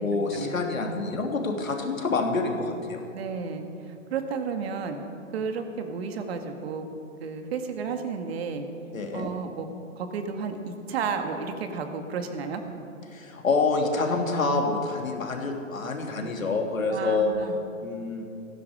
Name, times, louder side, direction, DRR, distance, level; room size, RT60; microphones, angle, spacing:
voice 1, 0.0-3.0 8.9-9.3 13.1-17.3 17.8-18.3, left 3 dB, 80° left, 2 dB, 2.9 m, -27 dB
voice 2, 3.1-5.0 5.3-6.9 7.2-8.6 9.1-9.7 10.0-12.6 16.9-17.6, right 5 dB, 50° right, 6 dB, 2.0 m, -32 dB
18.0 x 15.5 x 5.0 m, 2.7 s
figure-of-eight pair, 125°, 40 cm